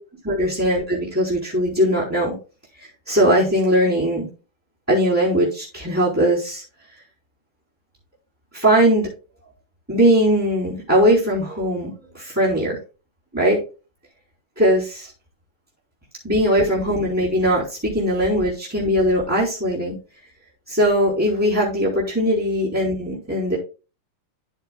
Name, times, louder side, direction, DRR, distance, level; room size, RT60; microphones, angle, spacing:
voice 1, 0.2-2.3 3.1-4.2 4.9-6.6 8.5-9.1 9.9-12.8 13.3-13.6 14.6-15.1 16.2-19.9 20.7-23.6, equal, 5° right, -6 dB, 4.0 m, -20 dB
13.0 x 6.6 x 2.4 m, 0.32 s
omnidirectional pair, 2.2 m